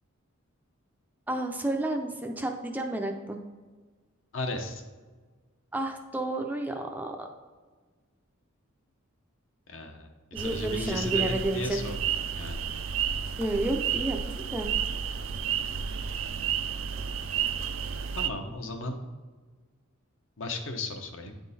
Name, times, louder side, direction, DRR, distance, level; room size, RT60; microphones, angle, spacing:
voice 1, 1.3-3.4 5.7-7.3 10.3-11.8 13.4-14.7, right 1 dB, 10° right, 3 dB, 0.4 m, -31 dB
voice 2, 4.3-4.8 9.7-10.1 10.4-12.0 12.3-12.6 18.1-19.0 20.4-21.3, left 2 dB, 65° left, 4 dB, 0.8 m, -35 dB
sound 1, 10.4-18.3, right 8 dB, 65° right, 0.4 m, -31 dB
9.4 x 3.7 x 4.1 m, 1.4 s
head